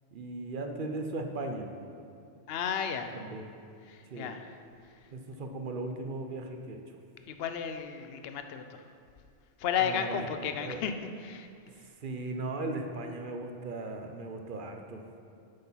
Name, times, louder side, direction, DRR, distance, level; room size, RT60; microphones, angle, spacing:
voice 1, 0.1-1.7 3.1-3.4 4.1-4.3 5.1-6.8 9.8-10.2 10.6-10.8 12.0-15.0, right 2 dB, 50° right, 4 dB, 0.8 m, -37 dB
voice 2, 2.5-3.1 3.9-4.5 7.3-8.8 9.6-10.9 11.2-11.5, left 7 dB, 65° left, 7 dB, 0.8 m, -33 dB
8.0 x 6.8 x 5.6 m, 2.4 s
omnidirectional pair, 1.2 m